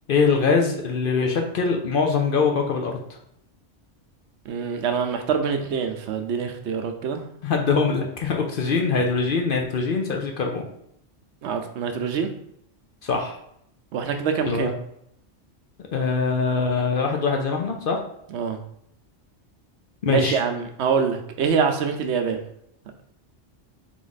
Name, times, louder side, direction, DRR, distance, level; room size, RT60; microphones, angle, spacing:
voice 1, 0.1-3.0 7.4-10.6 13.0-13.4 14.5-14.7 15.9-18.0 20.0-20.4, left 4 dB, 55° left, 2 dB, 0.7 m, -23 dB
voice 2, 4.5-7.2 11.4-12.3 13.9-14.7 18.3-18.6 20.1-22.4, right 6 dB, 75° right, 6 dB, 0.9 m, -25 dB
3.9 x 3.1 x 3.9 m, 0.73 s
omnidirectional pair, 1.2 m